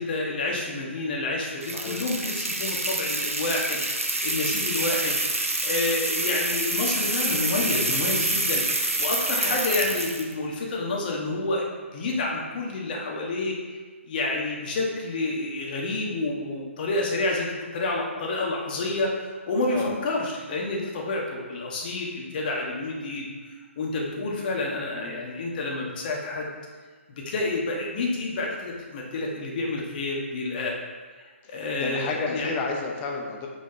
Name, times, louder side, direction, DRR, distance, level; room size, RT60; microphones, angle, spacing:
voice 1, 0.0-3.8 4.2-5.2 5.6-11.6 11.9-13.6 14.0-19.1 19.5-23.3 23.8-26.5 27.1-30.8 31.5-32.5, left 2 dB, 40° left, -1 dB, 1.4 m, -29 dB
sound 1, 1.6-10.3, right 2 dB, 90° right, 0.9 m, -27 dB
voice 2, 1.7-2.0 9.4-10.0 19.7-19.9 24.9-25.2 31.4-33.5, left 4 dB, 20° left, 1 dB, 0.8 m, -32 dB
5.9 x 5.0 x 4.4 m, 1.4 s
figure-of-eight pair, 135°, 7 cm